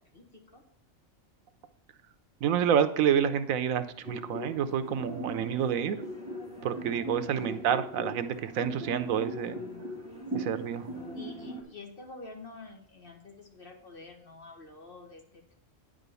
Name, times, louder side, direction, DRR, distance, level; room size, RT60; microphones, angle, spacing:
voice 1, 0.1-0.6 7.3-7.7 9.4-9.9 10.4-10.7 11.1-15.5, left 3 dB, 45° left, 1 dB, 1.9 m, -48 dB
voice 2, 2.4-6.0 6.6-9.6 10.3-10.9, right 8 dB, 85° right, 10 dB, 1.1 m, -28 dB
sound 1, 4.0-11.6, equal, 5° right, 2.3 m, -39 dB
9.6 x 5.1 x 6.8 m, 0.62 s
omnidirectional pair, 1.4 m